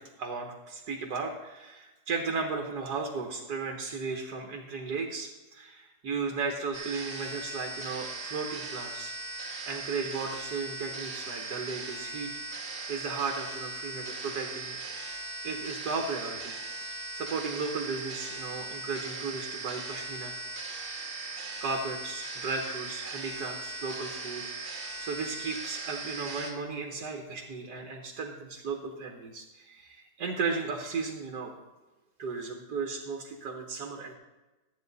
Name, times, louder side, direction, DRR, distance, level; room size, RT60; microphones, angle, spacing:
voice 1, 0.0-9.1 9.6-12.3 12.9-20.4 21.6-24.4 25.0-31.5 32.2-34.1, right 4 dB, 85° right, 1 dB, 1.7 m, -35 dB
sound 1, 6.7-26.5, right 3 dB, 55° right, 2.0 m, -39 dB
12.5 x 9.1 x 4.1 m, 1.1 s
omnidirectional pair, 1.7 m